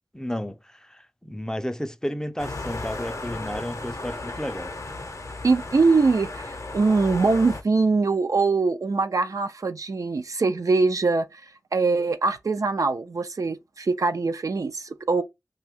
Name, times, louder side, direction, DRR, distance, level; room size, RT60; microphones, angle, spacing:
voice 1, 0.1-4.7, equal, 10° left, 0.4 m, -32 dB
sound 1, 2.4-7.6, left 2 dB, 55° left, 0.6 m, -35 dB
voice 2, 5.4-11.4 11.7-15.2, right 4 dB, 65° right, 0.4 m, -23 dB
2.6 x 2.2 x 3.4 m
wide cardioid pair, 55°, 6 cm